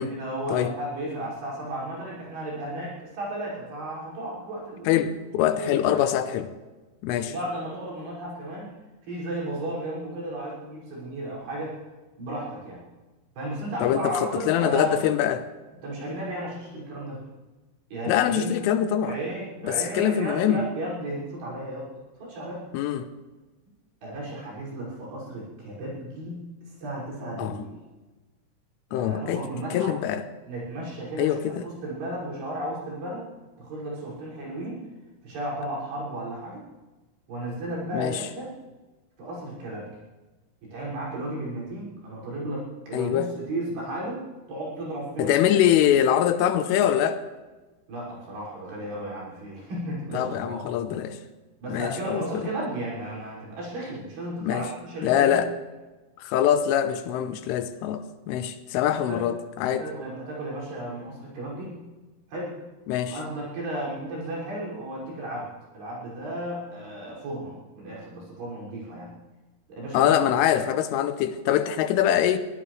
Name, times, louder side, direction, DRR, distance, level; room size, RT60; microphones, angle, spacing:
voice 1, 0.0-4.9 5.5-6.0 7.2-8.7 9.0-11.8 12.2-12.8 13.4-15.0 15.8-17.2 17.9-18.5 19.0-21.9 22.2-22.7 24.0-26.5 26.8-27.8 28.9-29.9 30.5-33.3 33.6-34.8 35.2-36.6 37.3-38.5 39.2-39.9 40.6-45.5 47.9-50.6 51.6-55.5 58.9-59.2 59.7-61.8 62.3-62.6 63.0-69.2 69.7-70.2, right 1 dB, 60° right, -5 dB, 8.0 m, -34 dB
voice 2, 4.9-6.5 7.0-7.3 13.8-15.4 18.1-19.2 19.6-20.6 22.7-23.1 27.4-27.6 28.9-29.5 29.7-30.2 31.2-31.6 37.9-38.3 42.9-43.3 45.2-47.2 50.1-51.2 51.7-52.5 54.4-54.7 55.0-55.5 56.2-59.9 62.9-63.2 69.9-72.4, left 10 dB, 85° left, 9 dB, 3.4 m, -24 dB
23.5 x 16.0 x 3.3 m, 1.2 s
omnidirectional pair, 5.6 m